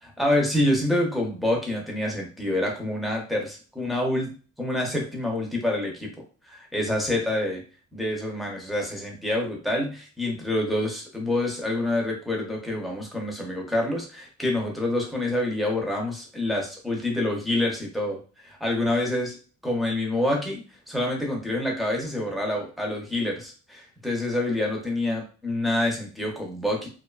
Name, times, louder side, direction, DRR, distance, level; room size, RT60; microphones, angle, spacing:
voice 1, 0.2-6.1 6.4-7.6 7.9-19.4 19.6-20.6 20.9-26.9, left 1 dB, ahead, -1 dB, 0.5 m, -27 dB
2.5 x 2.3 x 2.2 m, 0.38 s
cardioid pair, 175°, 29 cm